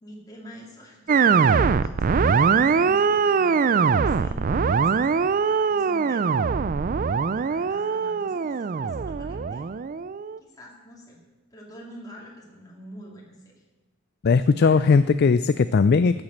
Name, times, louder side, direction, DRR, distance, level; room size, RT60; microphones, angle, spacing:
voice 1, 0.0-5.1 5.4-6.7 7.0-9.7 10.4-11.2 11.5-13.6 14.6-15.0, equal, 15° left, -3 dB, 2.4 m, -46 dB
sound 1, 1.1-10.4, right 5 dB, 40° right, 0.4 m, -22 dB
voice 2, 14.2-16.2, left 5 dB, 45° left, 13 dB, 0.3 m, -18 dB
14.0 x 7.4 x 7.8 m, 1.1 s
head